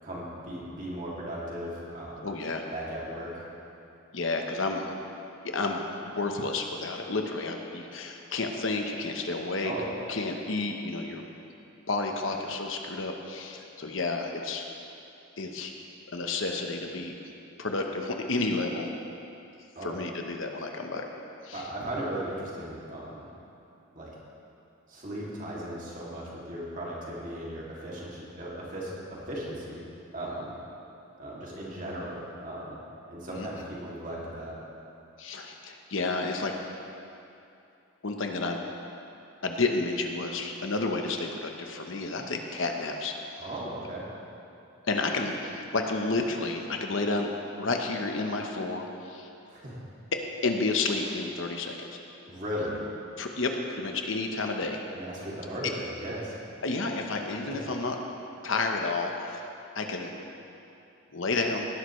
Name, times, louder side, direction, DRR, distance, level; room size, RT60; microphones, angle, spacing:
voice 1, 0.0-2.2 2.7-3.5 9.6-10.1 19.8-20.0 21.5-23.2 23.9-24.1 24.9-29.0 29.3-29.8 30.1-30.5 31.2-32.8 33.1-34.5 43.4-44.0 49.5-49.8 52.3-52.8 54.9-56.4, right 1 dB, 40° right, -6 dB, 2.6 m, -37 dB
voice 2, 2.2-2.6 4.1-4.9 5.4-9.7 10.1-11.2 11.9-14.7 15.4-15.7 16.1-17.2 17.6-18.9 19.8-21.1 21.4-21.7 33.3-33.5 35.2-36.5 38.0-38.6 39.4-43.2 44.8-47.3 47.6-49.3 50.1-51.9 53.2-54.8 56.6-58.0 58.4-59.4 59.7-60.1 61.1-61.7, left 3 dB, 70° left, 3 dB, 1.0 m, -31 dB
18.0 x 11.5 x 3.2 m, 2.7 s
head